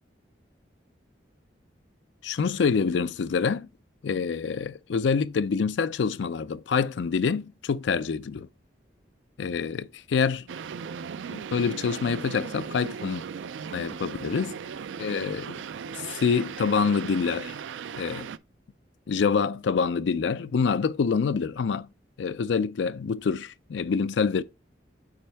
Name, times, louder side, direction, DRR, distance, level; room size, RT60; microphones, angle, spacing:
voice 1, 2.2-3.7 4.0-8.5 9.4-10.5 11.3-13.2 13.7-14.5 15.0-15.6 16.0-17.5 18.0-18.3 19.1-21.9 22.2-24.4, left 5 dB, 80° left, 0.4 m, -26 dB
sound 1, 10.5-18.4, right 6 dB, 85° right, 0.4 m, -37 dB
8.7 x 4.3 x 3.3 m
head